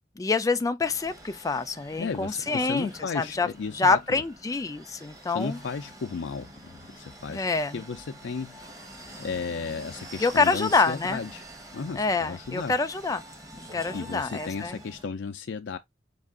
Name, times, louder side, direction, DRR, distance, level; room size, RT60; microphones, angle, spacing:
voice 1, 0.2-3.5 3.7-5.6 7.3-7.8 10.2-11.2 11.9-13.2 13.5-14.8, left 4 dB, 20° left, 0.4 m, -26 dB
sound 1, 0.8-15.1, right 1 dB, 20° right, 1.1 m, -46 dB
voice 2, 2.0-4.2 5.3-7.4 7.7-8.7 9.2-11.4 11.7-12.7 13.9-15.8, left 5 dB, 90° left, 0.4 m, -34 dB
5.3 x 2.4 x 3.6 m
head